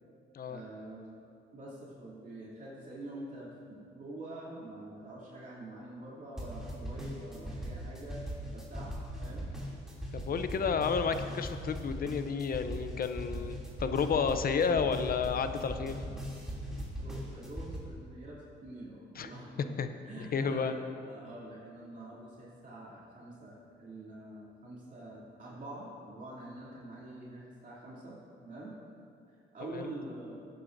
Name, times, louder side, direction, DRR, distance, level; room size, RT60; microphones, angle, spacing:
voice 1, 0.5-1.1 1.5-8.2 8.5-9.5 10.6-10.8 13.3-13.4 14.7-14.9 17.0-19.8 20.0-28.7 29.5-30.4, right 1 dB, 40° right, -7 dB, 2.9 m, -46 dB
sound 1, 6.4-17.8, equal, 5° right, 2.9 m, -39 dB
voice 2, 10.1-15.9 19.2-19.3 19.8-19.9 20.2-20.7 29.7-29.9, left 6 dB, 45° left, 9 dB, 0.7 m, -31 dB
18.0 x 9.2 x 2.7 m, 2.4 s
cardioid pair, 90°, 20 cm